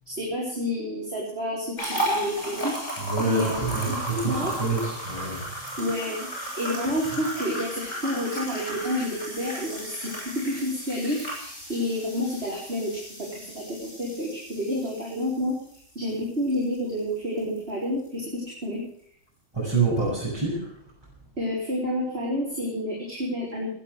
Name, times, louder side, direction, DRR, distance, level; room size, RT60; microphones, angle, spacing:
voice 1, 0.1-2.9 3.2-3.9 4.3-4.5 5.8-6.3 6.6-15.6 15.9-18.8 21.4-23.7, left 1 dB, 50° right, -5 dB, 4.5 m, -29 dB
sound 1, 1.8-17.0 17.4-17.6 18.0-18.1, equal, 65° left, 8.4 m, -34 dB
voice 2, 3.0-5.4 19.5-20.7, right 3 dB, 20° right, -9 dB, 7.9 m, -26 dB
20.0 x 10.0 x 6.4 m, 0.65 s
omnidirectional pair, 1.3 m